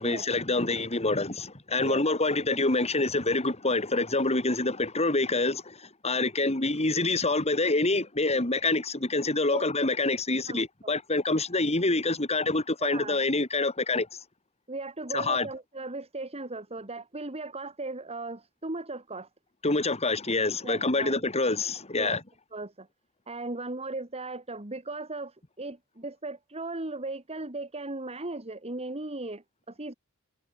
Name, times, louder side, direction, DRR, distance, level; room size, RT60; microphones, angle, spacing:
voice 1, 0.0-14.1 15.1-15.5 19.6-22.2, left 2 dB, 30° left, 3.2 m, -26 dB
voice 2, 12.8-13.2 14.7-19.3 20.6-21.2 22.0-22.2 22.5-22.9 23.3-29.9, right 2 dB, 30° right, 2.7 m, -37 dB
head